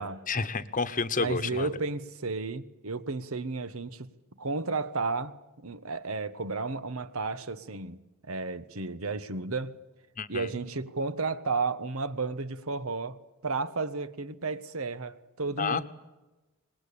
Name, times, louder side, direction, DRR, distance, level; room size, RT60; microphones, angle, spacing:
voice 1, 0.0-1.7 10.2-10.5 15.6-15.9, left 4 dB, 40° left, 1.1 m, -30 dB
voice 2, 1.2-4.1 4.4-9.8 10.3-15.9, right 3 dB, 80° right, 1.3 m, -33 dB
25.0 x 20.0 x 8.6 m
head